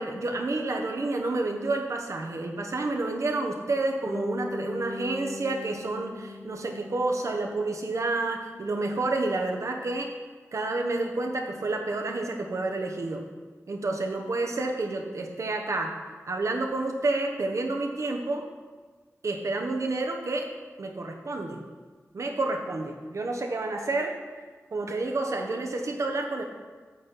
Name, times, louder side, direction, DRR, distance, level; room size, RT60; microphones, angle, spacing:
voice 1, 0.0-10.1 10.5-13.2 13.7-15.9 16.3-18.5 19.2-20.5 20.8-21.6 22.1-24.1 24.7-26.4, right 2 dB, 65° right, 2 dB, 1.2 m, -29 dB
Bass guitar, 4.1-8.2, left 1 dB, ahead, 0.8 m, -39 dB
8.8 x 4.3 x 7.4 m, 1.4 s
wide cardioid pair, 105°, 5 cm